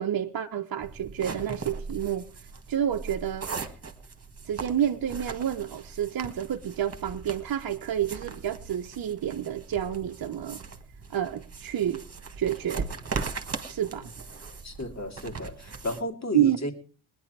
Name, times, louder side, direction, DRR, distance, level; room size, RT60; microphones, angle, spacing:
voice 1, 0.0-2.3 2.7-3.5 4.4-10.6 11.1-12.0 12.4-12.9 13.7-14.1 16.3-16.6, right 10 dB, 50° right, 1.0 m, -29 dB
sound 1, 0.8-16.0, right 4 dB, 30° right, 1.9 m, -39 dB
voice 2, 14.6-16.7, left 1 dB, 35° left, 2.7 m, -33 dB
19.0 x 10.5 x 4.7 m
supercardioid pair, 65°, 46 cm